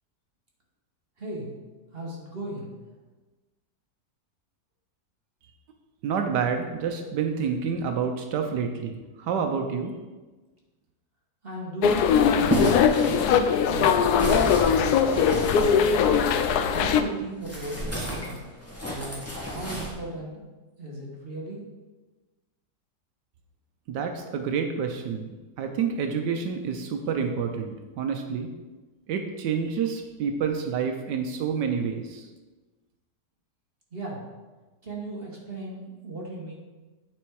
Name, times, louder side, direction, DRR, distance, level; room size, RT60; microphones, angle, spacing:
voice 1, 1.2-1.5 1.9-2.7 11.4-16.0 16.7-18.5 18.9-20.4 20.8-21.6 33.9-34.2 34.8-36.5, right 2 dB, 35° right, -3 dB, 1.5 m, -37 dB
voice 2, 6.0-9.9 23.9-28.5 29.1-32.3, right 6 dB, 80° right, 5 dB, 1.3 m, -28 dB
sound 1, 11.8-17.0, left 7 dB, 75° left, 1.0 m, -21 dB
sound 2, 12.1-16.9 17.4-19.9, equal, 10° left, 1.5 m, -31 dB
9.3 x 4.3 x 4.7 m, 1.2 s
omnidirectional pair, 1.9 m